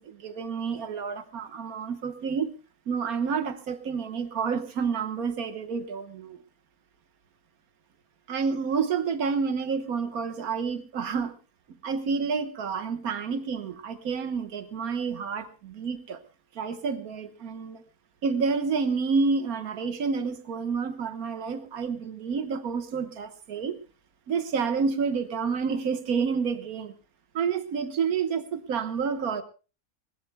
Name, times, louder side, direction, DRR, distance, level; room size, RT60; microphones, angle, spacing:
voice 1, 0.0-2.5 2.9-6.4 8.3-11.3 11.8-16.2 16.5-17.8 18.2-23.8 24.3-26.9 27.3-29.4, right 5 dB, 90° right, 9 dB, 1.7 m, -29 dB
20.5 x 20.0 x 2.2 m, 0.34 s
omnidirectional pair, 1.5 m